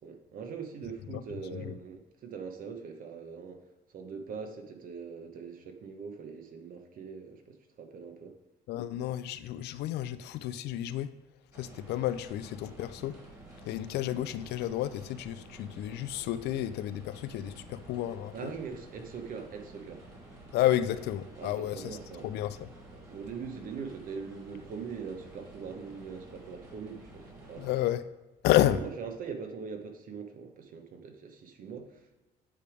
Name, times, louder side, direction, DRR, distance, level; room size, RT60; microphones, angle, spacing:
voice 1, 0.0-3.6 3.9-8.4 18.3-20.1 21.4-22.3 22.9-27.7 28.7-32.2, right 5 dB, 55° right, 1.1 m, -42 dB
voice 2, 8.7-11.1 11.5-13.2 13.6-18.3 20.5-22.0 22.2-22.7 27.6-28.0 28.4-28.8, left 13 dB, 80° left, 0.4 m, -31 dB
sound 1, 11.5-27.8, right 2 dB, 20° right, 2.5 m, -51 dB
9.3 x 3.4 x 4.8 m
cardioid pair, 110°, 17 cm